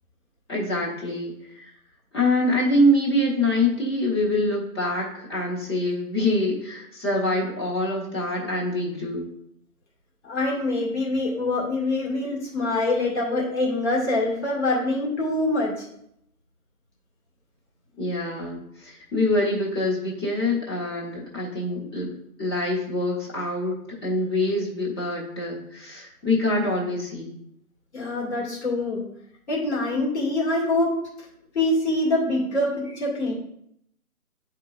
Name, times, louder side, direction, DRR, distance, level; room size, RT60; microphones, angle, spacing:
voice 1, 0.5-1.7 2.1-9.3 18.0-22.1 22.4-23.8 24.0-27.3, left 1 dB, 15° left, -5 dB, 1.3 m, -25 dB
voice 2, 10.3-15.9 27.9-29.0 29.5-30.9 31.5-33.3, left 2 dB, 45° left, -5 dB, 2.3 m, -24 dB
10.0 x 4.6 x 2.6 m, 0.75 s
figure-of-eight pair, 150°, 45 cm